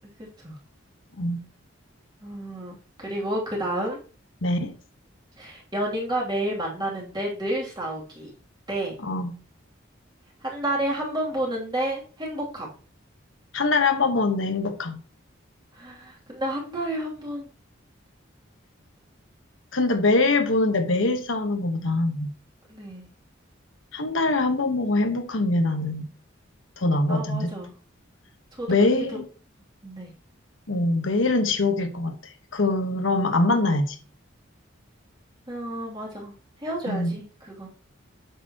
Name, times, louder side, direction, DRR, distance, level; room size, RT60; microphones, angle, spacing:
voice 1, 2.2-4.0 5.4-8.3 8.7-8.9 10.4-12.7 15.7-17.5 22.7-23.1 27.1-27.7 28.6-28.7 29.8-30.1 35.5-36.3 36.6-37.7, right 1 dB, 20° right, 2.8 m, -30 dB
voice 2, 4.4-4.7 9.0-9.3 13.5-15.0 19.7-22.3 23.9-26.1 26.8-27.5 28.7-29.2 30.7-34.0 36.9-37.1, left 2 dB, 75° left, 1.2 m, -23 dB
9.2 x 6.8 x 2.9 m
head